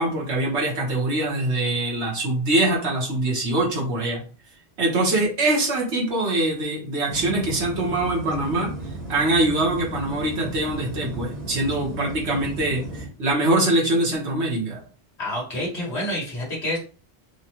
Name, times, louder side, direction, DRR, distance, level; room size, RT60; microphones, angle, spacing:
voice 1, 0.0-4.2 4.8-8.7 9.1-12.8 13.2-14.8, right 2 dB, 75° right, -3 dB, 1.6 m, -23 dB
sound 1, 7.1-13.1, right 2 dB, 40° right, 1.2 m, -34 dB
voice 2, 15.2-16.8, left 1 dB, 70° left, -3 dB, 1.8 m, -28 dB
4.5 x 2.3 x 3.0 m, 0.38 s
omnidirectional pair, 1.1 m